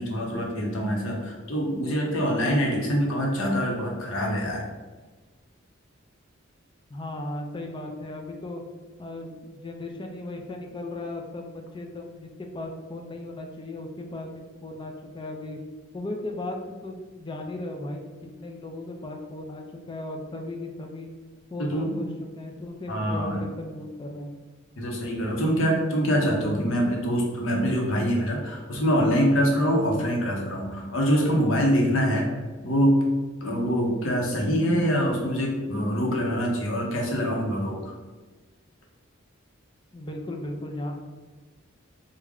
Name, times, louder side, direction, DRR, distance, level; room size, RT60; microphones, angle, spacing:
voice 1, 0.0-4.6 21.6-22.0 22.9-23.5 24.8-32.3 32.6-33.0 33.4-37.8, equal, 70° left, -1 dB, 0.8 m, -24 dB
voice 2, 6.9-8.6 9.0-15.6 15.9-18.0 18.4-21.1 21.5-24.3 39.9-40.9, left 2 dB, 25° left, 2 dB, 0.4 m, -36 dB
3.5 x 2.1 x 3.5 m, 1.3 s
head